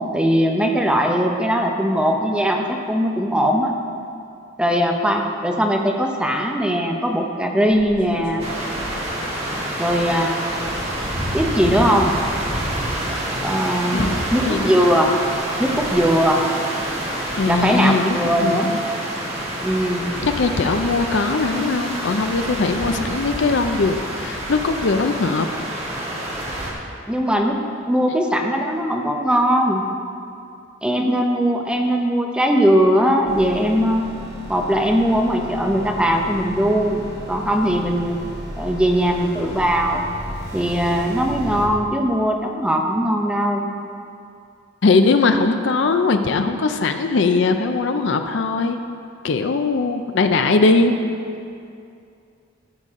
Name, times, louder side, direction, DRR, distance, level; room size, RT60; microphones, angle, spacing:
voice 1, 0.1-3.7 4.6-8.4 9.8-10.5 11.3-12.1 13.4-14.0 14.3-15.1 15.6-16.4 17.5-18.7 19.6-20.1 27.1-27.6 27.9-29.8 30.8-34.0 34.5-38.2 38.6-40.1 40.5-43.7, equal, 5° right, 1 dB, 0.7 m, -20 dB
sound 1, 7.6-10.3 10.7-14.8 15.0-16.3, equal, 40° left, 2.4 m, -35 dB
sound 2, 8.4-26.7, right 1 dB, 30° right, 1.5 m, -27 dB
voice 2, 13.9-14.8 17.4-18.8 20.2-25.5 28.1-28.2 44.8-48.8 49.2-51.0, left 3 dB, 60° left, 7 dB, 0.5 m, -20 dB
sound 3, 33.2-41.7, equal, 55° right, 2.2 m, -34 dB
14.5 x 6.8 x 3.7 m, 2.5 s
head